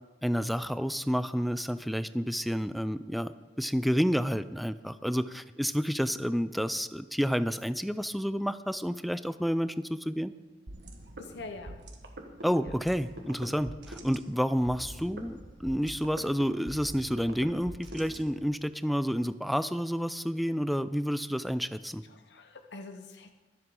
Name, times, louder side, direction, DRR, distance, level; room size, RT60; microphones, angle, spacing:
voice 1, 0.2-10.3 12.4-22.0, equal, ahead, 13 dB, 0.3 m, -30 dB
sound 1, 10.7-18.6, right 1 dB, 80° right, 1.5 m, -45 dB
voice 2, 11.2-11.7 12.6-12.7 22.1-23.3, left 3 dB, 75° left, 6 dB, 0.8 m, -44 dB
23.5 x 7.8 x 3.8 m, 1.2 s
head